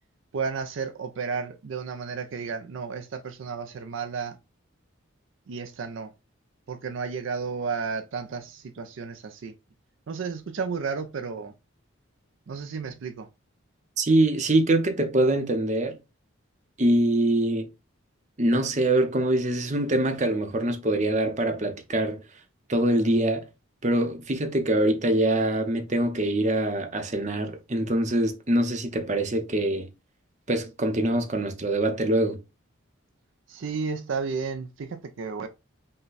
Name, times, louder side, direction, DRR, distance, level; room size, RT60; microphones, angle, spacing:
voice 1, 0.3-4.4 5.5-6.1 6.7-9.5 10.1-11.5 12.5-13.3 33.5-35.5, right 5 dB, 65° right, 0.4 m, -32 dB
voice 2, 14.0-16.0 16.8-17.7 18.4-22.2 22.7-23.5 23.8-29.9 30.5-32.4, right 1 dB, 35° right, 0.7 m, -24 dB
5.5 x 2.2 x 3.9 m
head